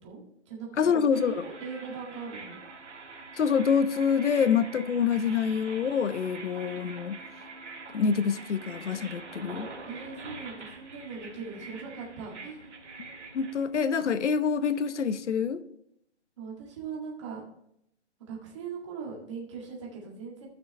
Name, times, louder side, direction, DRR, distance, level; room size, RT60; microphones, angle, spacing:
voice 1, 0.0-0.7 0.9-2.6 9.9-12.6 16.4-17.4 18.3-20.5, right 5 dB, 25° right, 1.9 m, -40 dB
voice 2, 0.8-1.4 3.4-7.2 7.9-9.7 13.3-15.6, left 6 dB, 85° left, 0.9 m, -26 dB
sound 1, 1.1-13.6, right 3 dB, 80° right, 2.1 m, -45 dB
14.5 x 6.2 x 3.3 m
hypercardioid pair, 175°, 35 cm